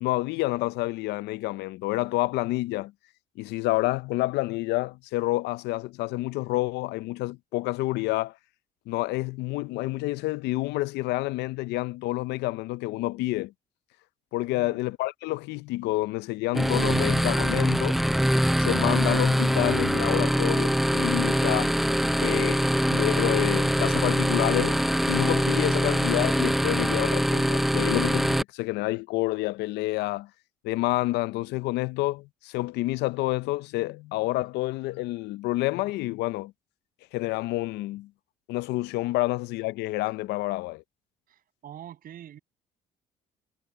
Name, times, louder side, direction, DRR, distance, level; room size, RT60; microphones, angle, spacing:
voice 1, 0.0-2.9 3.4-8.3 8.9-13.5 14.3-18.0 18.6-21.8 22.2-24.8 25.1-30.3 30.6-36.5 37.1-38.1 38.5-40.8, left 19 dB, 85° left, 0.5 m, -28 dB
sound 1, 16.5-28.4, equal, ahead, 0.4 m, -23 dB
voice 2, 41.3-42.4, right 10 dB, 60° right, 6.4 m, -45 dB
cardioid pair, 110°, 17 cm